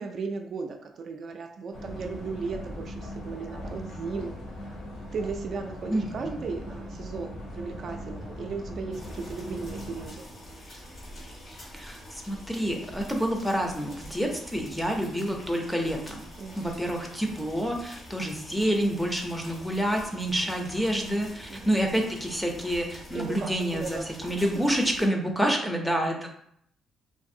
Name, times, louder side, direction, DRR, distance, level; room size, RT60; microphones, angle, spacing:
voice 1, 0.0-4.6 5.1-10.3 16.4-16.8 21.5-21.7 23.1-24.1 25.4-25.7, right 4 dB, 55° right, 4 dB, 0.3 m, -36 dB
sound 1, 1.7-10.1, left 1 dB, 80° left, 0.8 m, -39 dB
voice 2, 5.9-6.4 11.7-16.2 16.6-26.3, equal, ahead, 2 dB, 0.5 m, -28 dB
sound 2, 8.9-25.1, equal, 50° left, 1.3 m, -46 dB
2.6 x 2.5 x 2.6 m, 0.71 s
cardioid pair, 90°, 0 cm